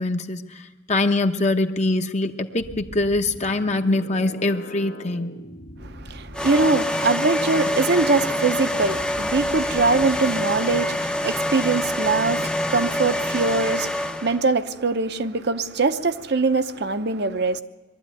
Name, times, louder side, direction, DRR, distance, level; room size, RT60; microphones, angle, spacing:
voice 1, 0.0-5.4, left 2 dB, 35° left, 0.9 m, -23 dB
sound 1, 2.6-10.8, left 1 dB, 70° left, 2.0 m, -41 dB
voice 2, 6.1-17.6, right 3 dB, 55° right, 0.8 m, -23 dB
sound 2, 6.3-14.5, left 1 dB, 5° left, 0.6 m, -25 dB
22.0 x 12.5 x 9.2 m
head